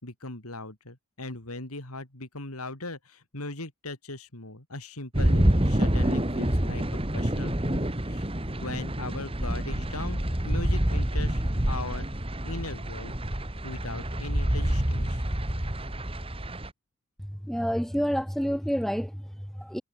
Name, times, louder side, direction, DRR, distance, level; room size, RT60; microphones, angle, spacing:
voice 1, 0.0-6.8 7.1-8.3 8.6-10.2 10.4-12.1 12.4-13.2 13.6-15.2, left 2 dB, 85° left, 4.1 m, -39 dB
sound 1, 5.1-16.7, right 1 dB, 25° right, 2.1 m, -27 dB
voice 2, 17.2-19.8, equal, ahead, 3.9 m, -29 dB
head